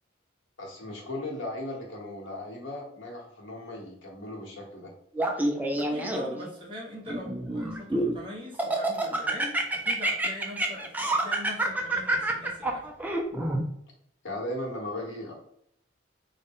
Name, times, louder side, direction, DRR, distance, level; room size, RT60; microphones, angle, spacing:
voice 1, 0.6-4.9 14.2-15.3, left 1 dB, 85° left, -1 dB, 1.1 m, -37 dB
Laughter, 5.2-6.5 7.1-8.2 8.6-13.6, right 1 dB, 10° right, 0.3 m, -27 dB
voice 2, 5.8-12.9, left 1 dB, 25° right, -4 dB, 1.0 m, -42 dB
3.8 x 2.1 x 3.5 m, 0.70 s
head